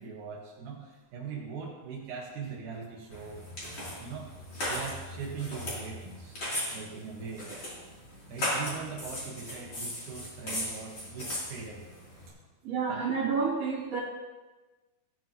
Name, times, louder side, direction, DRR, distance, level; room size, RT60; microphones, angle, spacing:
voice 1, 0.0-7.5 7.8-8.0 8.3-11.9 12.9-13.1, right 5 dB, 70° right, -3 dB, 1.8 m, -41 dB
sound 1, 3.1-12.3, left 1 dB, 30° left, 3.5 m, -37 dB
voice 2, 12.6-14.0, right 5 dB, 40° right, -5 dB, 3.0 m, -29 dB
17.5 x 9.6 x 3.0 m, 1.2 s
omnidirectional pair, 5.7 m